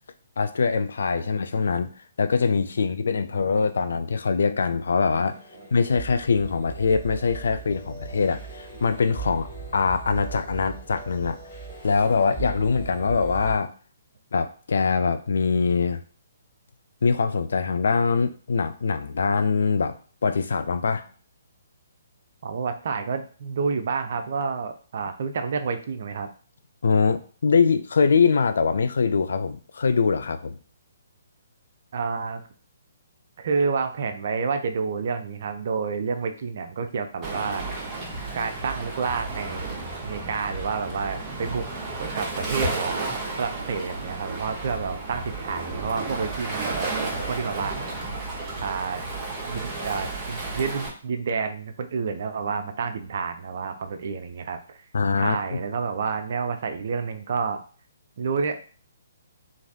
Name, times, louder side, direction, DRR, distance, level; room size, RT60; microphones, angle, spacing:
voice 1, 0.4-1.9 2.2-5.4 5.7-11.4 11.8-13.7 14.3-16.0 17.0-19.9 20.2-21.1 26.8-30.6 54.9-55.6, left 5 dB, 60° left, 9 dB, 0.3 m, -23 dB
sound 1, 5.1-13.6, right 5 dB, 10° left, 1.6 m, -39 dB
voice 2, 22.4-26.3 31.9-32.4 33.4-37.7 38.3-41.7 42.0-43.1 43.4-47.8 48.6-49.0 49.5-54.8 55.2-57.6 58.2-58.6, right 5 dB, 50° right, 7 dB, 0.4 m, -29 dB
Waves surf, 37.2-50.9, right 3 dB, 20° right, 0.9 m, -32 dB
3.1 x 2.5 x 2.6 m, 0.40 s
figure-of-eight pair, 130°, 0 cm